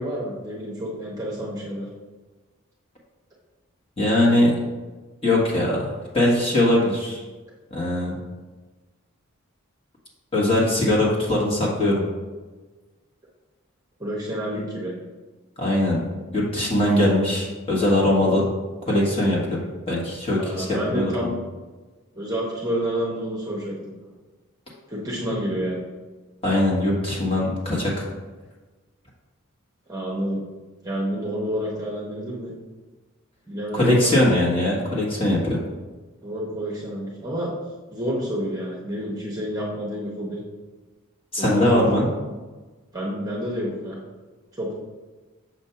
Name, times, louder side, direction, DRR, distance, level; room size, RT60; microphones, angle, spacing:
voice 1, 0.0-1.9 14.0-14.9 20.4-21.4 22.1-23.7 24.9-25.8 29.9-30.4 30.8-32.5 33.5-34.1 36.2-37.5 37.9-40.4 41.4-41.8 42.9-44.0 44.5-44.7, equal, 15° right, -4 dB, 0.8 m, -29 dB
voice 2, 4.0-4.6 5.2-5.8 6.1-7.2 7.7-8.1 10.3-12.0 15.6-16.0 16.3-18.5 18.9-19.6 19.9-21.3 26.4-28.0 33.7-35.6 41.3-42.1, left 1 dB, 25° left, -4 dB, 1.3 m, -21 dB
6.5 x 2.6 x 5.5 m, 1.3 s
head